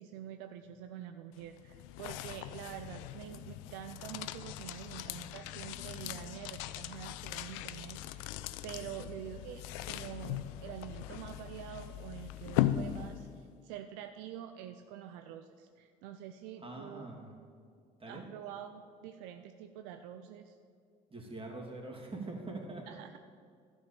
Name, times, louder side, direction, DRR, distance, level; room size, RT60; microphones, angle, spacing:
voice 1, 0.0-8.4 8.6-17.1 18.1-20.6 22.9-23.2, right 10 dB, 70° right, 8 dB, 0.5 m, -46 dB
sound 1, 1.3-13.5, left 13 dB, 70° left, 0.5 m, -39 dB
voice 2, 16.6-17.3 18.0-18.2 21.1-22.8, right 2 dB, 25° right, -1 dB, 2.9 m, -43 dB
12.0 x 5.3 x 8.7 m, 2.2 s
hypercardioid pair, 55°, 21 cm